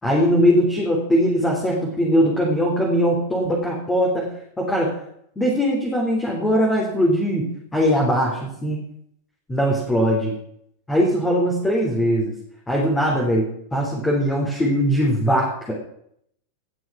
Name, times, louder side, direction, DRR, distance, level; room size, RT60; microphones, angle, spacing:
voice 1, 0.0-4.3 4.6-4.9 5.3-8.8 9.5-10.3 10.9-12.3 12.7-15.7, equal, 10° left, -3 dB, 3.4 m, -20 dB
18.5 x 6.3 x 6.1 m, 0.70 s
figure-of-eight pair, 90°, 0 cm